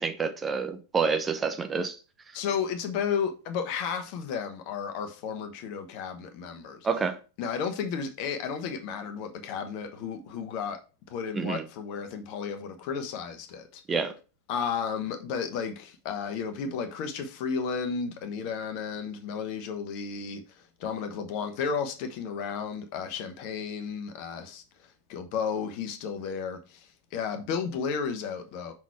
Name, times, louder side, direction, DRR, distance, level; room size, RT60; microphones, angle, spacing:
voice 1, 0.0-2.0 6.8-7.2 11.4-11.6 13.9-14.1, right 5 dB, 20° right, 0.7 m, -28 dB
voice 2, 2.3-6.9 7.4-10.8 11.1-13.8 14.5-28.7, left 6 dB, 45° left, 1.1 m, -33 dB
5.9 x 4.1 x 4.5 m
figure-of-eight pair, 90°, 0 cm